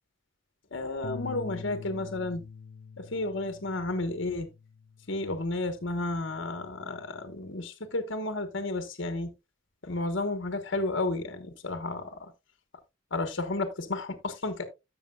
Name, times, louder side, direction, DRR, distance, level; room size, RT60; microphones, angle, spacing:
voice 1, 0.7-2.4 3.0-4.5 5.1-9.3 9.8-12.3 13.1-14.6, left 2 dB, 65° left, 1.3 m, -32 dB
sound 1, 1.0-7.3, left 5 dB, 50° left, 0.5 m, -46 dB
13.0 x 6.7 x 2.4 m
head